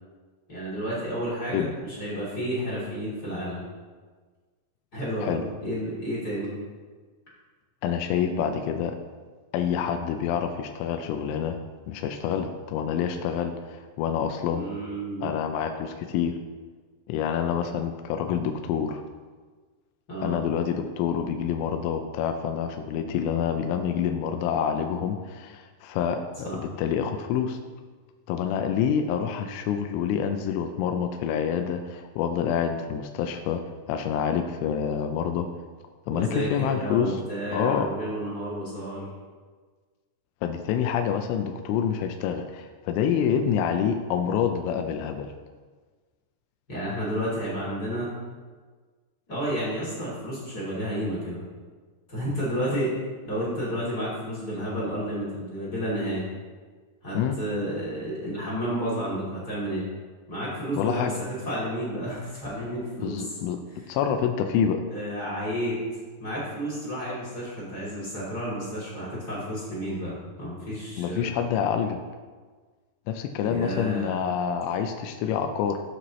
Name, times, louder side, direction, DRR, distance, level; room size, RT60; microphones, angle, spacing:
voice 1, 0.5-3.6 4.9-6.5 14.5-15.4 20.1-20.4 26.4-26.6 36.1-39.1 46.7-48.1 49.3-51.4 52.1-52.9 53.2-56.3 57.0-59.9 60.3-63.4 63.9-64.0 64.9-65.8 66.2-71.3 73.4-74.2, equal, 25° left, -8 dB, 2.6 m, -31 dB
voice 2, 7.8-9.0 9.5-11.6 11.9-14.7 15.2-16.4 17.1-19.0 20.2-27.6 28.3-33.6 33.9-35.5 36.1-37.2 37.5-37.9 40.4-45.3 57.1-57.4 60.8-61.1 63.0-63.6 63.9-64.8 71.0-72.0 73.1-75.9, left 8 dB, 90° left, 5 dB, 3.1 m, -27 dB
13.5 x 8.0 x 3.1 m, 1.4 s
omnidirectional pair, 5.4 m